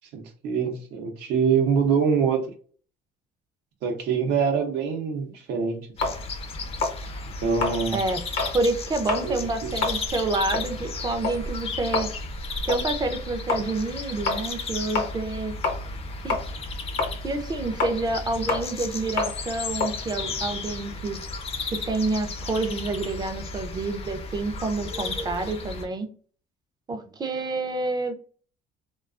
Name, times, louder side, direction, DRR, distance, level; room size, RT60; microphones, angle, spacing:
voice 1, 0.1-2.5 3.8-6.1 7.4-8.0 9.2-9.7, right 6 dB, 85° right, 0.7 m, -25 dB
sound 1, 6.0-8.6 9.0-9.3 9.7-16.0 16.3-21.1, left 3 dB, 80° left, 0.7 m, -29 dB
sound 2, 6.0-25.9, left 3 dB, 35° left, 0.4 m, -34 dB
voice 2, 8.5-12.1 12.7-15.5 16.2-16.4 17.2-21.2 21.9-26.1 26.9-28.1, right 2 dB, 25° right, 0.4 m, -28 dB
2.3 x 2.2 x 2.4 m
cardioid pair, 110°, 17 cm